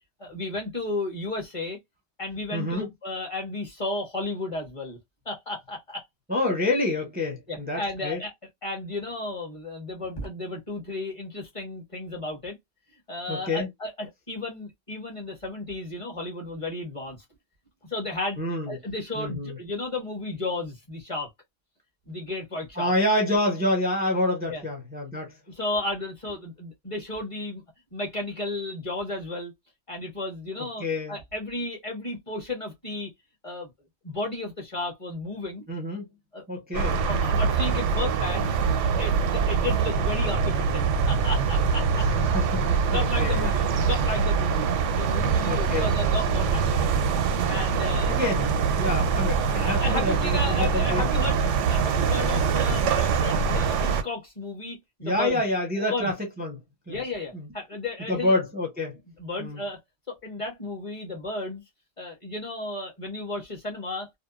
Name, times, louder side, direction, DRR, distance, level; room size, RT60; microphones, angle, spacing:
voice 1, 0.2-1.8 2.2-5.0 5.2-6.0 7.5-8.3 8.6-12.6 13.1-17.2 17.9-18.4 18.6-21.3 22.1-22.9 24.4-24.6 25.5-27.6 27.9-29.5 29.9-33.1 33.4-33.7 34.0-35.6 36.3-36.4 37.1-38.5 38.8-42.1 42.9-46.9 47.5-48.1 49.6-51.4 51.7-55.4 55.9-56.1 56.9-58.3 59.2-59.8 60.1-61.6 62.0-64.1, left 2 dB, 30° left, 1.0 m, -33 dB
voice 2, 2.5-2.9 6.3-8.2 13.3-13.7 18.4-18.8 19.2-19.6 22.8-25.3 30.8-31.2 35.7-36.1 36.5-37.0 42.0-43.6 45.4-45.9 48.1-51.0 55.0-56.6 56.9-57.0 57.3-57.5 58.1-59.0 59.4-59.6, left 1 dB, 10° right, 0.5 m, -28 dB
sound 1, 36.7-54.0, right 5 dB, 85° right, 0.9 m, -24 dB
2.7 x 2.2 x 2.3 m
omnidirectional pair, 1.2 m